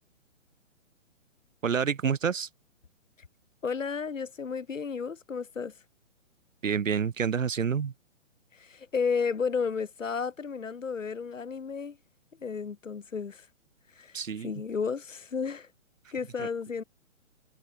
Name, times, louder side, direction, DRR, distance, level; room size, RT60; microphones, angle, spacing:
voice 1, 1.6-2.5 6.6-7.9 14.1-14.5 16.4-16.5, right 7 dB, 75° right, 1.4 m, -28 dB
voice 2, 3.6-5.7 8.5-12.0 12.4-13.5 14.0-14.2 14.4-15.7 16.1-16.8, left 5 dB, 75° left, 3.6 m, -32 dB
hypercardioid pair, 140°, 39 cm